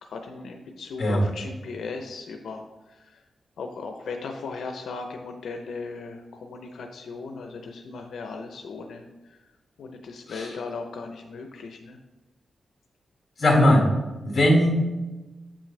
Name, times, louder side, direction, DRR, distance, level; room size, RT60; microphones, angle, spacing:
voice 1, 0.0-3.2 3.6-9.4 9.8-12.0, left 4 dB, 90° left, 4 dB, 0.6 m, -37 dB
voice 2, 13.4-13.9 14.2-14.8, left 1 dB, 40° left, -1 dB, 1.9 m, -19 dB
8.0 x 6.1 x 3.2 m, 1.1 s
wide cardioid pair, 160°, 0 cm